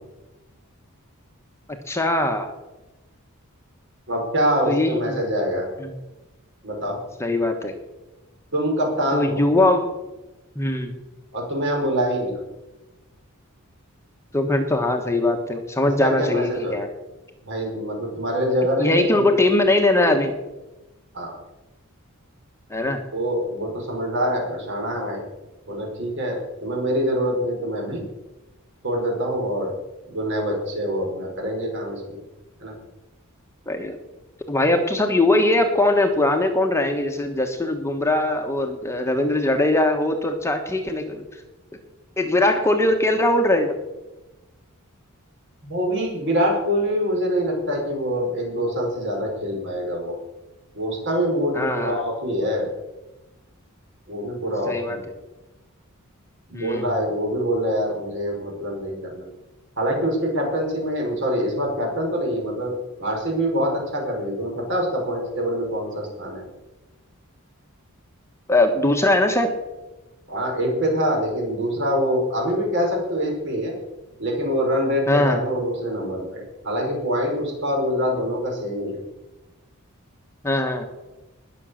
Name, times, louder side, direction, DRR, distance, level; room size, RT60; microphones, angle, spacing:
voice 1, 1.9-2.5 4.7-5.2 5.8-5.9 7.2-7.7 9.1-9.9 10.5-11.0 14.3-16.9 18.8-20.3 22.7-23.0 33.7-34.0 34.5-41.2 42.2-43.7 51.5-52.0 54.7-55.0 56.5-56.9 68.5-69.5 75.1-75.4 80.4-80.9, left 2 dB, 15° left, 4 dB, 1.2 m, -21 dB
voice 2, 4.1-5.7 6.6-7.0 8.5-9.4 11.3-12.4 16.0-16.8 17.4-19.3 21.1-21.3 23.1-25.2 25.7-28.0 28.8-29.7 30.1-32.2 32.6-32.7 45.6-50.2 50.7-52.7 54.1-55.0 56.5-59.2 59.8-62.7 63.0-66.4 70.3-73.7 74.2-79.0, equal, 55° right, 0 dB, 5.2 m, -25 dB
20.5 x 7.0 x 6.4 m, 1.0 s
head